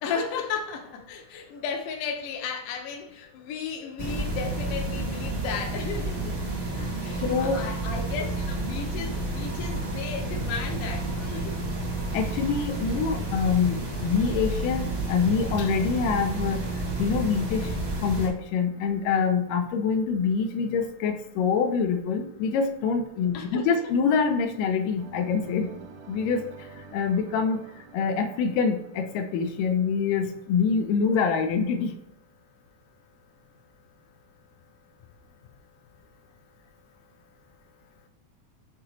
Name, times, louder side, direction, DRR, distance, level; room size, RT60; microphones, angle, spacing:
voice 1, 0.0-11.6 23.3-23.6, left 6 dB, 65° left, 1.6 m, -34 dB
sound 1, 4.0-18.3, right 2 dB, 45° right, 0.9 m, -30 dB
voice 2, 7.2-7.6 12.1-16.6 17.0-17.7 18.0-25.7 26.1-26.4 26.9-27.6 27.9-31.9, left 5 dB, 90° left, 2.4 m, -25 dB
sound 2, 25.0-30.9, right 4 dB, 75° right, 2.4 m, -49 dB
6.5 x 3.8 x 4.3 m
omnidirectional pair, 3.7 m